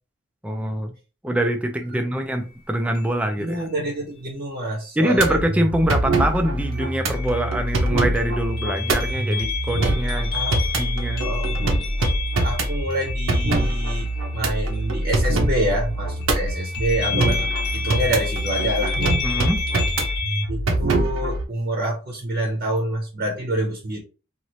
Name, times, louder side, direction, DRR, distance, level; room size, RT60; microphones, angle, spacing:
voice 1, 0.4-0.9 1.2-3.6 5.0-10.4 10.8-11.2 19.2-19.6, right 1 dB, 5° right, 0.4 m, -24 dB
sound 1, 2.2-2.3 2.9-3.5 6.7-15.9 16.2-20.4, left 5 dB, 55° left, 1.0 m, -32 dB
voice 2, 3.4-5.4 10.3-10.6 11.2-11.7 12.4-19.0 20.5-24.0, right 1 dB, 45° right, 0.8 m, -27 dB
sound 2, 5.1-21.4, right 1 dB, 80° right, 0.7 m, -24 dB
3.1 x 2.5 x 2.7 m
head